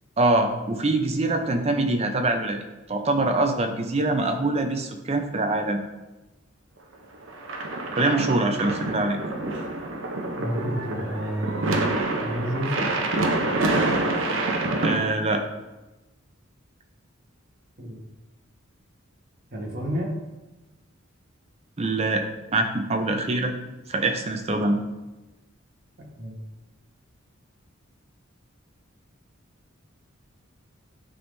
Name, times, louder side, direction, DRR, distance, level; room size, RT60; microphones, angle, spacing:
voice 1, 0.2-2.6 2.9-5.8 8.0-9.2 14.8-15.4 21.8-22.3 22.5-23.5 23.9-24.8, right 2 dB, 30° right, 5 dB, 0.6 m, -24 dB
sound 1, 7.3-15.0, right 2 dB, 65° right, 0.7 m, -27 dB
voice 2, 10.4-11.8 12.2-12.9 17.8-18.0 19.5-20.1 26.0-26.4, equal, 50° right, -1 dB, 1.4 m, -30 dB
9.7 x 3.6 x 2.7 m, 1.1 s
head